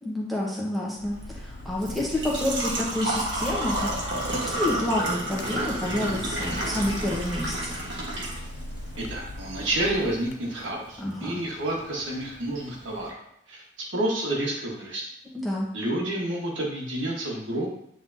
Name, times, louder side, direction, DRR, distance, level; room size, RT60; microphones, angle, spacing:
voice 1, 0.0-3.9 4.3-7.7 11.0-11.3 15.3-15.7, left 1 dB, ahead, -6 dB, 1.3 m, -29 dB
sound 1, 1.0-10.3, left 2 dB, 75° left, 0.5 m, -39 dB
Engine / Trickle dribble / Fill (with liquid), 1.1-13.1, right 1 dB, 65° right, 1.5 m, -33 dB
voice 2, 9.0-13.2 13.5-13.6 13.9-15.0 15.7-17.7, right 1 dB, 80° right, -2 dB, 1.6 m, -29 dB
9.0 x 3.8 x 2.8 m, 0.78 s
head